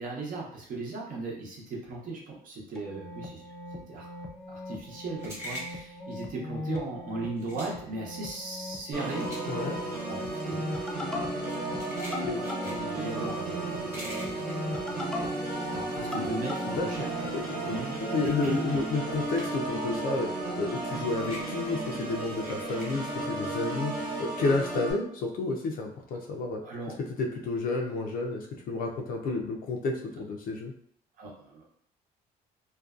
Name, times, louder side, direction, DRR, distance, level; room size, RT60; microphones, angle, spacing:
voice 1, 0.0-3.4 3.9-4.1 4.5-9.3 10.0-10.9 12.4-14.4 15.8-17.1 17.6-18.6 26.6-26.9 31.2-31.8, right 2 dB, 55° right, -3 dB, 0.8 m, -37 dB
sound 1, 2.7-18.8, left 2 dB, 5° left, 0.4 m, -40 dB
sound 2, 4.4-16.1 16.4-19.9 20.1-23.0, equal, 15° right, 1.1 m, -45 dB
Organ, 8.9-24.9, right 2 dB, 75° right, 1.0 m, -34 dB
voice 2, 9.5-9.8 12.3-12.4 16.7-17.7 18.0-26.6 27.2-30.7, left 3 dB, 60° left, 1 dB, 0.5 m, -31 dB
2.5 x 2.2 x 2.4 m, 0.64 s
cardioid pair, 110°, 17 cm